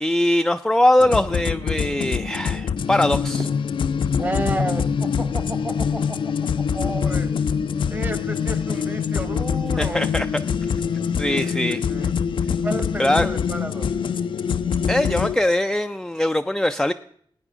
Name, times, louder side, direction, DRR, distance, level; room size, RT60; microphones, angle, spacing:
voice 1, 0.0-3.5 9.8-10.3 11.2-11.8 13.0-13.3 14.9-16.9, left 1 dB, 5° left, 7 dB, 0.3 m, -21 dB
sound 1, 1.0-15.4, left 7 dB, 75° left, 0.4 m, -24 dB
Fireworks, 3.4-6.4, right 3 dB, 70° right, 1.8 m, -44 dB
voice 2, 4.2-7.6 7.9-10.1 11.2-12.2 12.6-13.9, right 2 dB, 25° right, 11 dB, 1.0 m, -32 dB
15.0 x 9.1 x 3.6 m, 0.63 s
wide cardioid pair, 95°, 9 cm